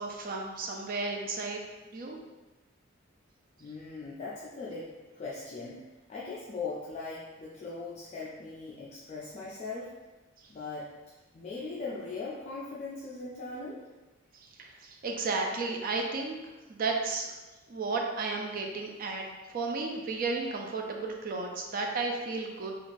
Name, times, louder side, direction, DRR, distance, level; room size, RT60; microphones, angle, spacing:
voice 1, 0.0-1.6 1.9-2.2 14.6-16.4 16.7-17.3 17.7-19.2 19.5-22.7, right 3 dB, 45° right, 1 dB, 0.4 m, -33 dB
voice 2, 3.6-4.9 5.1-10.0 10.5-10.9 11.3-13.9, left 3 dB, 35° left, -7 dB, 0.3 m, -39 dB
3.1 x 2.4 x 2.5 m, 1.2 s
head